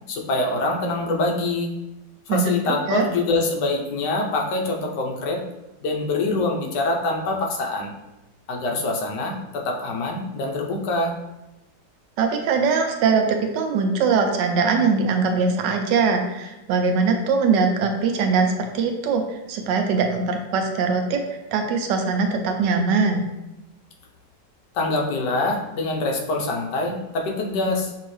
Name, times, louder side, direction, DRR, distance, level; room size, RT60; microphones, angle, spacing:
voice 1, 0.1-1.7 2.3-5.4 5.8-7.9 8.5-11.1 24.7-27.9, left 2 dB, 75° left, 1 dB, 1.3 m, -24 dB
voice 2, 2.3-3.1 12.2-21.2 21.5-23.2, right 4 dB, 80° right, 4 dB, 1.3 m, -21 dB
6.0 x 2.8 x 3.1 m, 0.97 s
omnidirectional pair, 1.9 m